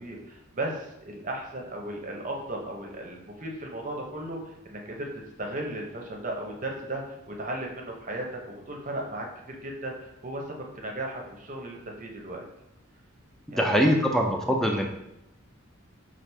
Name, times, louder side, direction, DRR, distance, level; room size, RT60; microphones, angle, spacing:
voice 1, 0.0-5.1 5.4-12.4 13.5-14.0, right 1 dB, 35° right, 1 dB, 0.7 m, -36 dB
voice 2, 13.5-14.9, equal, ahead, 1 dB, 0.4 m, -23 dB
5.8 x 2.4 x 3.4 m, 0.89 s
head